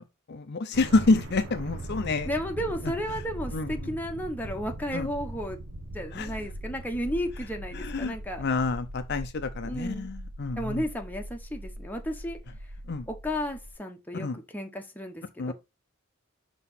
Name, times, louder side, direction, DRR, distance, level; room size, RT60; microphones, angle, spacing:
voice 1, 0.0-2.3 3.5-3.9 4.9-5.1 6.1-6.3 7.7-10.8 12.9-13.1 14.1-14.4 15.4-15.5, left 3 dB, 50° left, 0.6 m, -28 dB
sound 1, 0.7-13.8, right 1 dB, 65° right, 0.8 m, -40 dB
voice 2, 2.2-5.6 5.9-8.4 9.6-10.1 10.6-12.4 13.1-15.5, equal, 10° left, 0.9 m, -33 dB
5.8 x 3.0 x 5.6 m
head